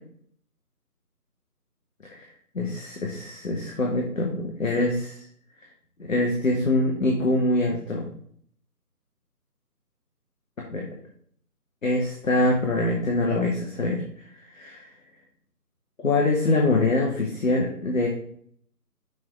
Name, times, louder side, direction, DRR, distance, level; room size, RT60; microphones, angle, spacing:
voice 1, 2.5-5.2 6.0-8.1 10.6-10.9 11.8-14.3 14.5-14.9 16.0-18.1, left 2 dB, 55° left, -1 dB, 1.2 m, -24 dB
6.1 x 3.8 x 4.4 m, 0.62 s
figure-of-eight pair, 160°, 48 cm